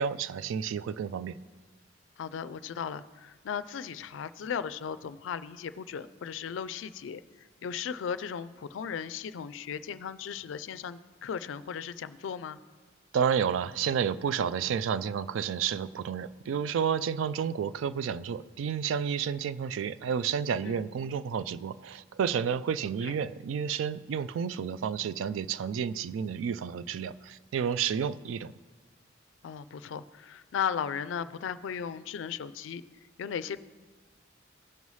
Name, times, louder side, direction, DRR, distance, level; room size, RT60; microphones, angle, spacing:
voice 1, 0.0-1.4 13.1-28.5, right 7 dB, 80° right, 15 dB, 0.3 m, -31 dB
voice 2, 2.2-12.6 20.6-20.8 23.0-23.2 29.4-32.8 33.2-33.6, left 7 dB, 75° left, 14 dB, 0.3 m, -36 dB
16.0 x 5.4 x 3.2 m, 1.4 s
head